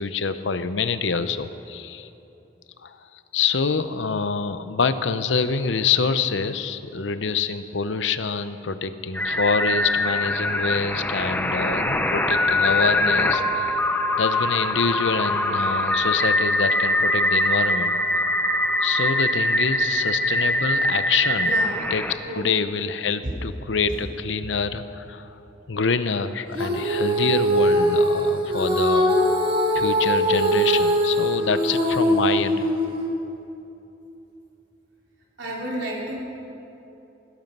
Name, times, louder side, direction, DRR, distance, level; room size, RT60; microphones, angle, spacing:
voice 1, 0.0-2.1 2.8-3.0 3.3-13.8 14.2-17.9 18.8-21.5 21.9-25.3 25.7-29.2 29.7-32.7, left 5 dB, 85° left, 11 dB, 0.7 m, -26 dB
sound 1, 9.1-22.1, left 1 dB, 10° left, 0.8 m, -23 dB
voice 2, 21.4-21.7 22.2-22.5 23.2-23.3 23.9-24.0 24.4-24.5 35.4-36.2, right 1 dB, 75° right, -3 dB, 3.7 m, -31 dB
Female singing, 26.5-33.0, equal, 30° right, 2.1 m, -21 dB
17.0 x 13.5 x 5.4 m, 2.9 s
head